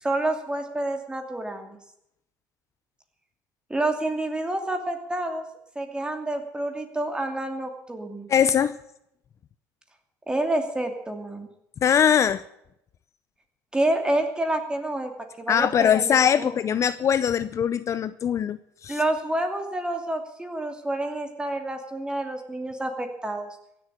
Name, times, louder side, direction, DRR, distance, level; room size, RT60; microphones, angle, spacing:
voice 1, 0.0-1.8 3.7-5.5 5.7-8.3 10.3-11.5 13.7-15.1 15.4-16.5 18.9-23.5, right 1 dB, 10° right, 5 dB, 2.6 m, -28 dB
voice 2, 8.3-8.8 11.8-12.4 15.5-19.0, left 8 dB, 40° left, 14 dB, 0.6 m, -22 dB
16.0 x 7.8 x 9.9 m, 0.78 s
cardioid pair, 110°, 8 cm